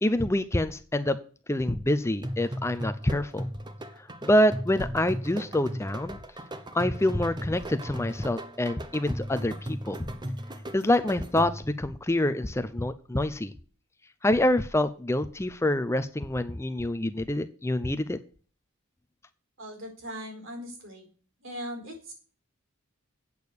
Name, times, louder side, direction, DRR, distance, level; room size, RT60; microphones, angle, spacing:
voice 1, 0.0-1.2 1.5-3.5 4.2-6.2 6.7-10.1 10.7-13.5 14.2-18.2, left 1 dB, 15° left, 11 dB, 0.5 m, -26 dB
sound 1, 2.2-11.8, equal, 20° right, 0.8 m, -37 dB
voice 2, 19.6-21.1 21.4-22.1, equal, 65° right, 3 dB, 4.5 m, -39 dB
8.6 x 6.7 x 8.3 m, 0.40 s
head